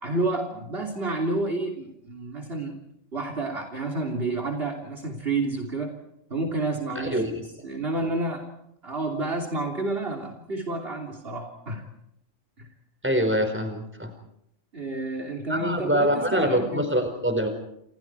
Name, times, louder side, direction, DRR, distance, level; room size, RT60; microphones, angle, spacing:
voice 1, 0.0-2.8 3.1-6.0 6.3-7.2 7.6-8.5 8.8-11.9 12.6-12.7 14.7-17.0, right 2 dB, 50° right, 5 dB, 3.4 m, -30 dB
voice 2, 6.9-7.3 13.0-14.1 15.5-17.5, equal, 10° right, 6 dB, 4.9 m, -24 dB
29.0 x 28.5 x 4.8 m, 0.76 s
omnidirectional pair, 1.3 m